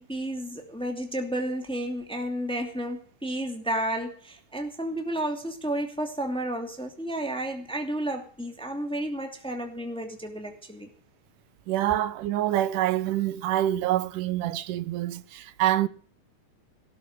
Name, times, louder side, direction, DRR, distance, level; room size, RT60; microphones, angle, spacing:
voice 1, 0.0-10.9, right 1 dB, ahead, 2.3 m, -32 dB
voice 2, 11.7-15.9, right 13 dB, 85° right, 2.5 m, -26 dB
18.5 x 7.1 x 8.1 m
omnidirectional pair, 3.6 m